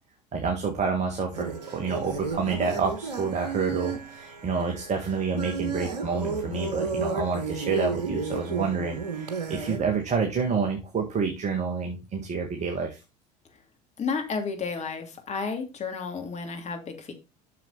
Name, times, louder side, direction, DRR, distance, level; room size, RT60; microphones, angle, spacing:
voice 1, 0.3-13.0, right 5 dB, 35° right, 3 dB, 1.9 m, -28 dB
sound 1, 1.3-9.8, right 4 dB, 85° right, 1.2 m, -32 dB
voice 2, 14.0-17.1, left 5 dB, 35° left, 4 dB, 2.7 m, -32 dB
7.5 x 6.8 x 4.0 m, 0.27 s
figure-of-eight pair, 70°, 21 cm